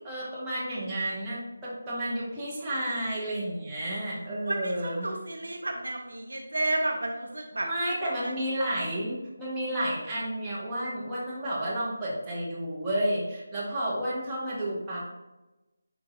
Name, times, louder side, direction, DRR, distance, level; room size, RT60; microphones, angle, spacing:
voice 1, 0.0-5.1 7.6-15.0, right 1 dB, 10° right, -9 dB, 1.9 m, -31 dB
voice 2, 4.5-7.7, right 2 dB, 65° right, 2 dB, 0.9 m, -31 dB
10.5 x 3.8 x 2.8 m, 1.0 s
figure-of-eight pair, 155°, 0 cm